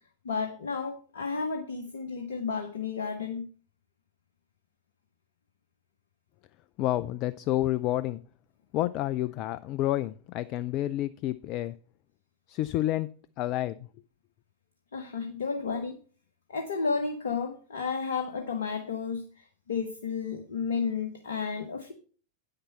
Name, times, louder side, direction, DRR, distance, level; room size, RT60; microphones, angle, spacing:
voice 1, 0.2-3.4 14.9-16.0 16.5-21.9, left 5 dB, 65° left, 7 dB, 1.1 m, -32 dB
voice 2, 6.8-8.2 8.7-11.7 12.5-13.1 13.4-13.8, left 14 dB, 40° left, 15 dB, 0.4 m, -29 dB
9.3 x 6.7 x 5.5 m, 0.40 s
figure-of-eight pair, 90°, 0 cm